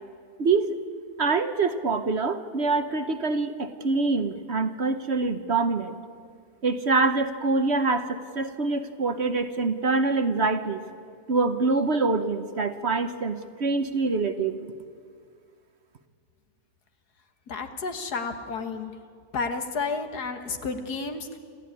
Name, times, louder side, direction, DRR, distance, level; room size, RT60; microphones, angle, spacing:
voice 1, 0.4-0.8 1.2-6.0 6.6-10.8 11.3-14.7, right 3 dB, 50° right, 9 dB, 1.2 m, -25 dB
voice 2, 17.5-18.9 19.3-21.4, left 4 dB, 80° left, 7 dB, 2.1 m, -31 dB
28.0 x 14.0 x 9.7 m, 2.1 s
omnidirectional pair, 1.7 m